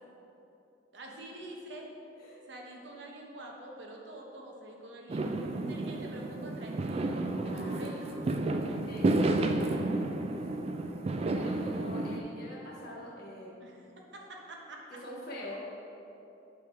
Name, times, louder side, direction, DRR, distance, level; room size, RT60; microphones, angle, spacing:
voice 1, 0.9-1.9 2.5-5.3 5.5-8.2 13.6-13.9 14.1-15.0, right 1 dB, 70° right, 0 dB, 0.9 m, -46 dB
Fireworks, 5.1-12.2, right 2 dB, 35° right, 0.3 m, -31 dB
voice 2, 7.4-9.4 10.3-10.7 11.3-13.7 14.9-15.6, left 1 dB, 55° left, -5 dB, 1.5 m, -46 dB
8.0 x 3.4 x 4.6 m, 2.9 s
head